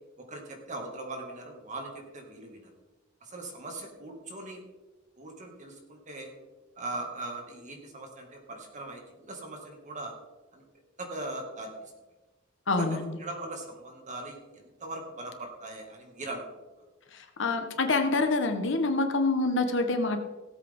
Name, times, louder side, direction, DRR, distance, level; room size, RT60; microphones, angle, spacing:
voice 1, 0.2-2.7 3.2-4.6 5.2-6.3 6.8-10.2 10.5-10.6 11.0-11.9 12.8-16.5, right 2 dB, 40° right, 2 dB, 2.2 m, -40 dB
voice 2, 12.7-13.2 17.1-20.2, left 3 dB, 65° left, 6 dB, 1.3 m, -26 dB
17.5 x 8.0 x 3.7 m, 1.2 s
head